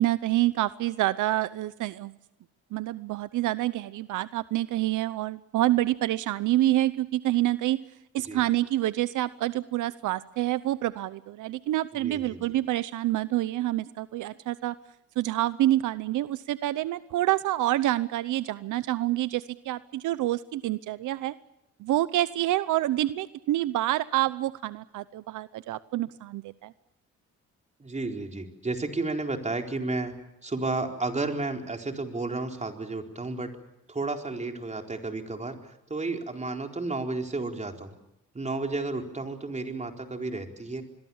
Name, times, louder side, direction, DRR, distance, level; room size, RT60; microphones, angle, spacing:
voice 1, 0.0-2.1 2.7-7.8 8.1-14.7 15.2-21.3 21.8-26.7, right 15 dB, 80° right, 15 dB, 0.8 m, -27 dB
voice 2, 12.0-12.4 27.8-30.1 30.4-33.5 33.9-38.0 38.3-40.8, right 3 dB, 25° right, 3 dB, 4.3 m, -32 dB
26.5 x 22.0 x 7.2 m, 0.87 s
cardioid pair, 90°, 30 cm